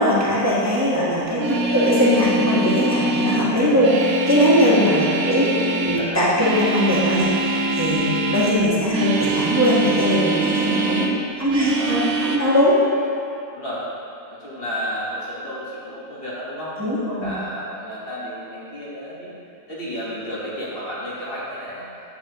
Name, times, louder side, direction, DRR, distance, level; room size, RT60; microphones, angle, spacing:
voice 1, 0.0-5.5 5.8-12.8 16.8-17.3, equal, 10° right, -8 dB, 0.9 m, -20 dB
voice 2, 1.2-2.0 5.3-6.3 11.6-12.0 13.5-13.8 14.3-19.3 19.7-21.9, equal, 35° left, -8 dB, 1.5 m, -32 dB
sound 1, 1.3-8.6 8.9-11.2 11.5-12.4, right 2 dB, 65° right, 1.0 m, -24 dB
8.7 x 6.6 x 2.9 m, 2.7 s
omnidirectional pair, 1.9 m